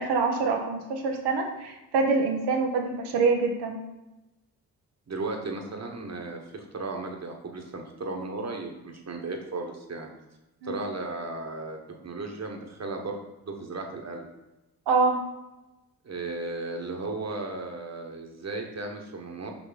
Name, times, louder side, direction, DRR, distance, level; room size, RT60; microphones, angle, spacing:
voice 1, 0.0-3.8 10.6-10.7 14.9-15.2, right 4 dB, 80° right, 2 dB, 1.1 m, -25 dB
voice 2, 5.1-10.1 10.6-11.8 12.0-13.2 13.4-14.3 16.0-19.5, right 3 dB, 40° right, 2 dB, 1.4 m, -35 dB
6.1 x 5.4 x 4.1 m, 0.99 s
supercardioid pair, 55°, 40 cm